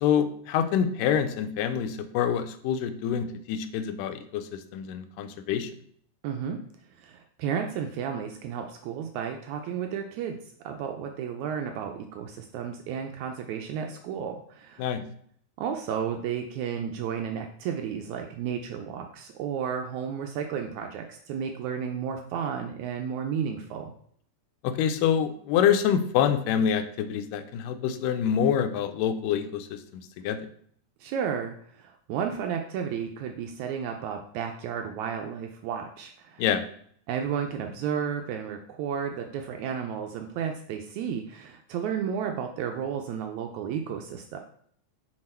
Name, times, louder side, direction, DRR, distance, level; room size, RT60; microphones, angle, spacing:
voice 1, 0.0-5.7 14.8-15.0 24.6-30.4 36.4-36.6, left 8 dB, 90° left, 9 dB, 2.2 m, -26 dB
voice 2, 6.2-6.6 7.0-10.4 10.6-14.9 15.6-23.9 31.0-36.4 37.1-44.4, right 7 dB, 80° right, 4 dB, 1.7 m, -32 dB
6.6 x 4.1 x 4.3 m, 0.63 s
omnidirectional pair, 3.7 m